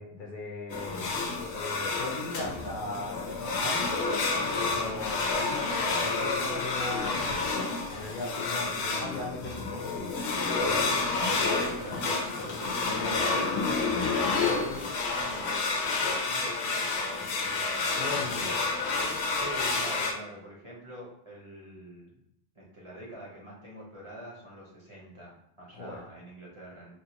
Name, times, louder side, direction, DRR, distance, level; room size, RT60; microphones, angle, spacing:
voice 1, 0.0-3.8 4.5-10.1 18.0-18.5 25.7-26.0, left 2 dB, 60° left, -2 dB, 0.7 m, -39 dB
sound 1, 0.7-20.1, left 3 dB, 90° left, 0.8 m, -29 dB
voice 2, 11.1-13.8 14.1-14.9 15.1-18.4 19.3-22.1 22.5-26.9, right 1 dB, 35° right, -4 dB, 0.7 m, -45 dB
Bell, 14.3-16.5, left 1 dB, 85° right, 1.0 m, -50 dB
3.0 x 2.4 x 2.8 m, 0.79 s
omnidirectional pair, 1.1 m